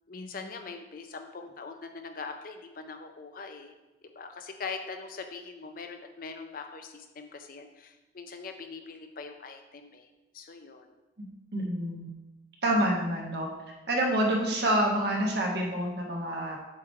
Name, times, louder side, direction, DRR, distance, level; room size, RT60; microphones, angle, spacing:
voice 1, 0.1-3.7 4.0-10.1 10.3-10.9, left 4 dB, 50° left, 5 dB, 0.5 m, -42 dB
voice 2, 11.5-12.1 12.6-13.5 13.9-16.6, right 1 dB, 60° right, -1 dB, 1.3 m, -27 dB
7.4 x 3.2 x 4.4 m, 1.0 s
head